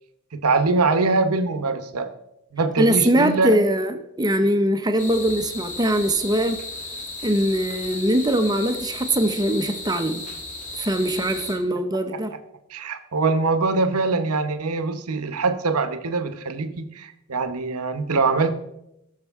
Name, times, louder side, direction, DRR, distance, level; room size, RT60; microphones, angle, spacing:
voice 1, 0.3-2.1 2.5-3.6 12.7-18.5, right 3 dB, 85° right, 1.0 m, -23 dB
voice 2, 2.8-6.6 7.2-10.2 10.8-12.3, right 1 dB, 15° right, 0.7 m, -22 dB
sound 1, 5.0-11.5, left 2 dB, 35° left, 2.2 m, -35 dB
17.5 x 6.6 x 3.6 m
head